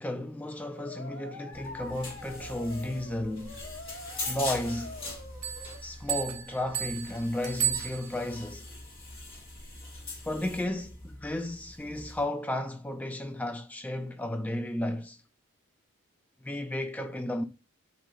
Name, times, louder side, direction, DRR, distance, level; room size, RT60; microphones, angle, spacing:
voice 1, 0.0-3.6 4.3-4.9 5.8-8.7 10.3-15.2 16.4-17.4, left 1 dB, 5° left, 0.4 m, -33 dB
sound 1, 0.6-5.8, left 2 dB, 55° left, 1.0 m, -45 dB
sound 2, 1.5-12.2, left 2 dB, 25° left, 1.4 m, -42 dB
Bell, 5.4-8.5, right 11 dB, 60° right, 0.8 m, -34 dB
3.8 x 2.7 x 3.1 m
head